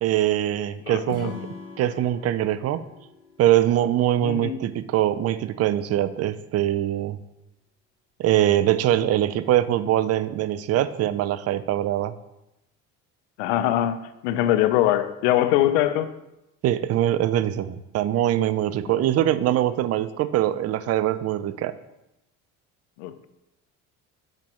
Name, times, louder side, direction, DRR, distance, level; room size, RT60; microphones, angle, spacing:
voice 1, 0.0-1.3 1.8-2.8 3.4-7.2 8.2-12.1 16.6-21.7, right 12 dB, 45° right, 0.5 m, -23 dB
voice 2, 0.9-1.3 4.2-4.6 13.4-16.1 23.0-23.3, left 13 dB, 85° left, 0.5 m, -23 dB
Acoustic guitar / Strum, 1.1-4.4, left 5 dB, 70° left, 1.9 m, -41 dB
7.6 x 4.3 x 3.1 m
supercardioid pair, 80°, 35 cm